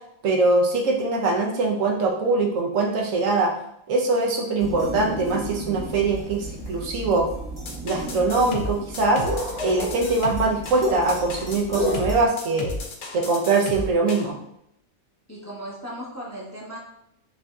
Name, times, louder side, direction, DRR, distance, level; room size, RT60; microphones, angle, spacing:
voice 1, 0.2-3.5 3.9-7.3 7.8-9.3 9.6-12.7 13.1-14.3, right 3 dB, 70° right, 0 dB, 1.1 m, -22 dB
sound 1, 4.6-12.2, right 1 dB, 30° right, 1.1 m, -32 dB
sound 2, 7.7-14.3, left 3 dB, 60° left, 0.5 m, -34 dB
voice 2, 15.3-16.8, equal, 15° left, -5 dB, 0.7 m, -36 dB
5.9 x 2.6 x 2.3 m, 0.77 s
omnidirectional pair, 1.4 m